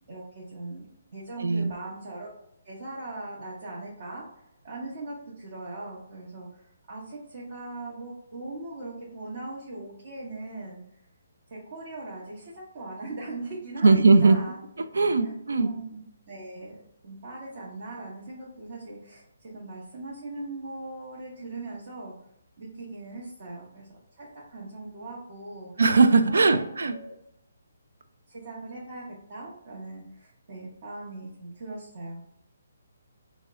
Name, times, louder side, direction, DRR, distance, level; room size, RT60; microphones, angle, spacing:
voice 1, 0.1-0.9 1.1-2.3 2.6-4.2 4.6-6.6 6.9-10.8 11.5-14.6 15.2-16.0 16.3-16.8 17.0-22.1 22.6-25.7 26.3-27.2 28.3-29.0 29.3-32.4, right 2 dB, 45° right, -6 dB, 0.9 m, -40 dB
voice 2, 1.4-1.7 13.8-14.4 14.9-15.7 25.8-26.9, right 3 dB, 85° right, 10 dB, 0.3 m, -19 dB
2.8 x 2.1 x 3.5 m, 0.76 s
hypercardioid pair, 165°, 0 cm